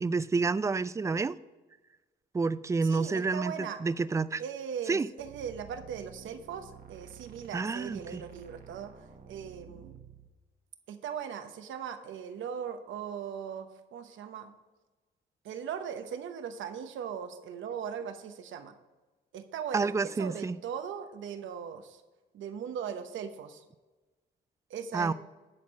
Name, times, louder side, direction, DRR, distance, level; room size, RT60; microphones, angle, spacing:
voice 1, 0.0-1.4 2.3-3.5 3.8-4.4 4.9-5.1 7.5-8.2 19.7-20.6 24.9-25.1, right 4 dB, 15° right, 16 dB, 0.3 m, -29 dB
voice 2, 2.8-3.8 4.4-10.0 10.9-14.5 15.4-18.7 19.3-22.0 22.3-23.6 24.7-25.1, right 8 dB, 75° right, 8 dB, 1.0 m, -39 dB
sound 1, 5.2-10.3, right 7 dB, 50° right, 1.1 m, -51 dB
10.5 x 4.5 x 6.1 m, 1.2 s
cardioid pair, 90°, 20 cm